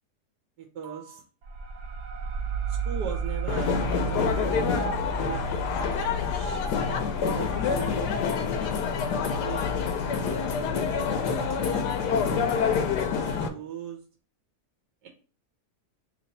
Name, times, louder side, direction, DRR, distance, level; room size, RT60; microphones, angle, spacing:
voice 1, 0.6-1.3 2.7-4.9 5.2-6.6 7.3-8.7 9.4-9.9 10.2-10.8 11.3-12.3 13.0-14.0 15.0-15.1, right 7 dB, 80° right, 1 dB, 1.3 m, -41 dB
sound 1, 1.4-10.6, right 7 dB, 65° right, 0.7 m, -35 dB
sound 2, 3.5-13.5, left 6 dB, 85° left, 1.2 m, -27 dB
3.1 x 3.0 x 4.0 m, 0.38 s
omnidirectional pair, 1.7 m